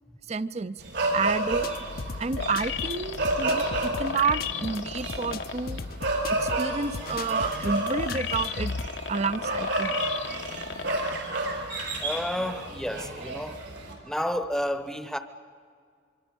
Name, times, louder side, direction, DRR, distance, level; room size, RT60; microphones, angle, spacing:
voice 1, 0.3-0.8 1.1-1.7 2.2-5.8 6.3-8.7 9.1-9.9, right 4 dB, 35° right, 0.5 m, -29 dB
sound 1, 0.8-13.9, right 2 dB, 80° right, 4.8 m, -31 dB
sound 2, 1.5-8.9, left 3 dB, 50° left, 0.6 m, -37 dB
sound 3, 2.4-5.8 6.3-11.4 11.8-11.9, left 6 dB, 85° left, 1.1 m, -35 dB
voice 2, 12.0-13.6 14.0-15.2, equal, 5° left, 0.8 m, -31 dB
25.0 x 24.0 x 5.4 m
head